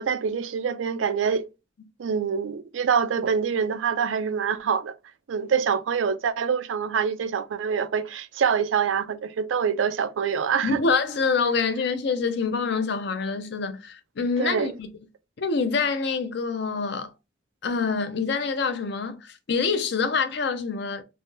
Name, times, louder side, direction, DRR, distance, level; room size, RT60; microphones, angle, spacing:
voice 1, 0.0-1.5 2.0-4.9 5.3-10.8 14.4-14.7, right 6 dB, 85° right, 0.4 m, -25 dB
voice 2, 10.6-14.9 15.4-17.1 17.6-21.0, left 4 dB, 60° left, 0.5 m, -26 dB
3.4 x 2.1 x 2.6 m
head